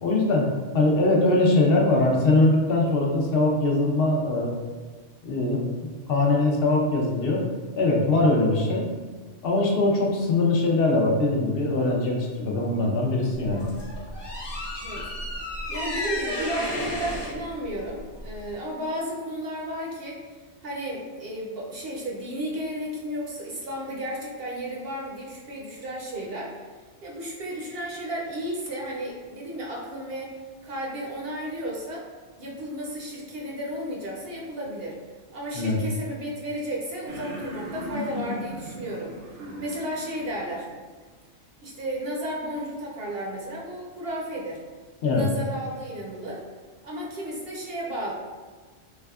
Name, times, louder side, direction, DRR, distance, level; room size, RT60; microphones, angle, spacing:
voice 1, 0.0-4.5 5.2-7.4 7.8-8.9 9.4-13.7 35.5-35.8 45.0-45.3, left 2 dB, 60° left, -1 dB, 0.8 m, -22 dB
sound 1, 13.3-18.5, left 1 dB, 25° left, 0.7 m, -33 dB
voice 2, 15.7-20.2 20.6-26.6 27.0-30.3 30.6-32.1 32.4-35.0 35.3-39.1 39.6-40.7 41.6-44.6 45.1-46.4 46.8-48.1, equal, 60° right, -3 dB, 0.8 m, -33 dB
sound 2, 37.1-40.6, equal, 80° right, 1.0 m, -37 dB
3.4 x 3.4 x 2.3 m, 1.4 s
omnidirectional pair, 1.2 m